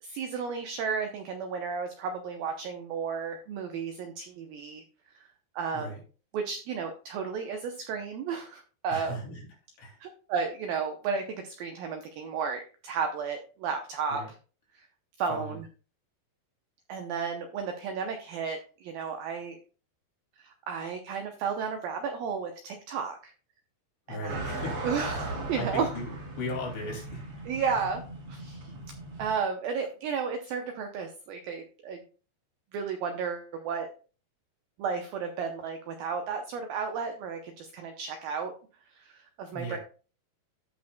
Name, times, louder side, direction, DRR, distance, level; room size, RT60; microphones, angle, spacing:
voice 1, 0.0-4.8 5.1-5.3 5.6-5.9 6.3-9.2 10.0-14.2 14.7-14.9 15.2-15.6 16.9-19.6 20.4-23.3 24.1-24.4 24.8-25.9 27.5-28.0 28.3-28.7 29.2-32.0 32.7-33.9 34.8-38.5 39.0-39.8, right 6 dB, 80° right, 5 dB, 2.0 m, -33 dB
voice 2, 8.9-9.5 9.8-10.0 14.1-14.3 15.3-15.6 24.1-27.2 27.8-27.9 39.5-39.8, left 1 dB, 80° left, -1 dB, 4.6 m, -38 dB
sound 1, 24.3-29.3, right 2 dB, 45° right, 2.9 m, -38 dB
15.0 x 5.2 x 2.2 m, 0.37 s
omnidirectional pair, 5.1 m